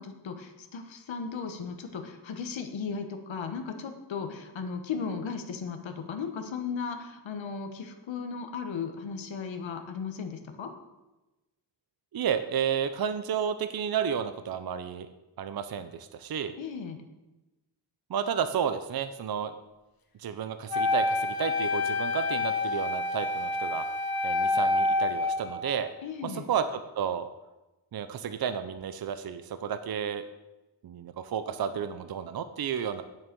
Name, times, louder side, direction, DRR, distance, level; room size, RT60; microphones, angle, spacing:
voice 1, 0.0-10.7 16.6-17.0 26.0-26.5, left 5 dB, 90° left, 6 dB, 1.4 m, -36 dB
voice 2, 12.1-15.1 15.4-16.5 18.1-19.5 20.2-23.9 24.2-25.9 26.2-27.3 27.9-30.2 30.8-33.0, right 8 dB, 55° right, 11 dB, 0.6 m, -32 dB
Wind instrument woodwind instrument, 20.7-25.8, left 2 dB, 50° left, 1.4 m, -28 dB
8.8 x 7.3 x 6.8 m, 1.0 s
wide cardioid pair, 135°, 45 cm